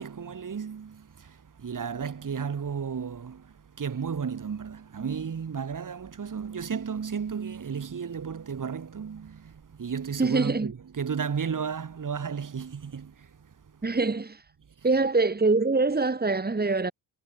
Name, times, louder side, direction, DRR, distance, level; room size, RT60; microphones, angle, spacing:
voice 1, 0.0-13.8, right 6 dB, 40° right, 4.7 m, -34 dB
voice 2, 10.2-10.7 13.8-14.4 14.8-16.9, right 3 dB, 20° right, 3.4 m, -24 dB
hypercardioid pair, 60°, 49 cm